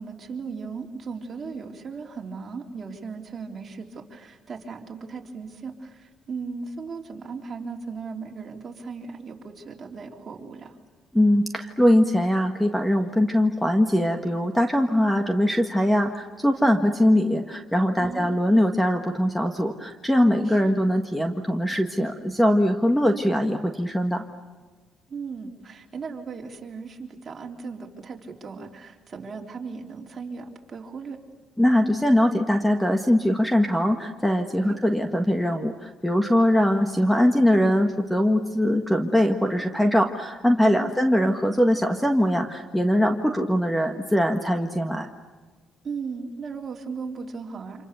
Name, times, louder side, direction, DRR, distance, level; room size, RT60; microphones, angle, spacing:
voice 1, 0.0-10.8 18.0-18.4 20.4-20.7 25.1-31.2 34.6-34.8 40.6-40.9 45.8-47.9, right 5 dB, 35° right, 0 dB, 3.7 m, -37 dB
voice 2, 11.1-24.2 31.6-45.1, equal, 5° left, 5 dB, 1.6 m, -22 dB
29.5 x 27.0 x 7.0 m, 1.4 s
cardioid pair, 120°, 0 cm